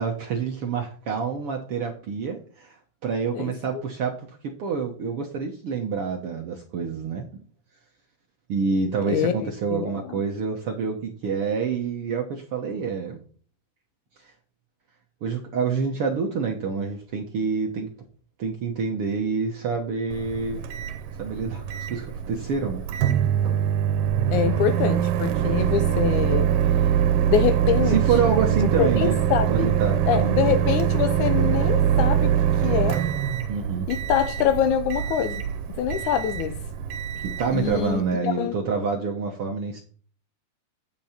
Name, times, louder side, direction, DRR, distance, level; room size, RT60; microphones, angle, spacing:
voice 1, 0.0-2.8 3.0-7.4 8.5-13.2 14.2-14.3 15.2-17.9 18.4-20.6 21.2-22.8 27.9-29.2 29.5-30.6 33.5-33.9 37.2-39.8, right 5 dB, 65° right, 1.5 m, -27 dB
voice 2, 3.3-3.8 9.1-10.2 24.3-26.5 27.3-28.0 28.6-29.8 30.1-32.4 32.6-33.0 33.9-35.4 35.8-36.6 37.5-38.6, left 9 dB, 75° left, 1.9 m, -25 dB
Microwave oven, 20.1-38.1, right 9 dB, 80° right, 2.5 m, -24 dB
9.2 x 6.7 x 4.3 m
omnidirectional pair, 3.9 m